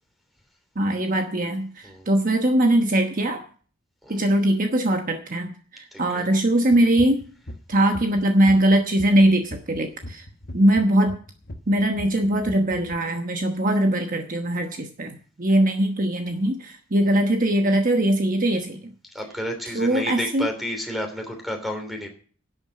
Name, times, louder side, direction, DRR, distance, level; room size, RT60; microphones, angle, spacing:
voice 1, 0.8-3.4 4.1-7.3 7.7-10.2 10.5-11.2 11.7-18.9 19.7-20.5, right 1 dB, 40° right, 5 dB, 1.1 m, -21 dB
voice 2, 5.9-6.3 19.1-22.1, equal, ahead, 4 dB, 3.1 m, -31 dB
sound 1, 6.7-13.0, left 1 dB, 45° left, 1.2 m, -39 dB
11.5 x 8.1 x 7.5 m, 0.43 s
head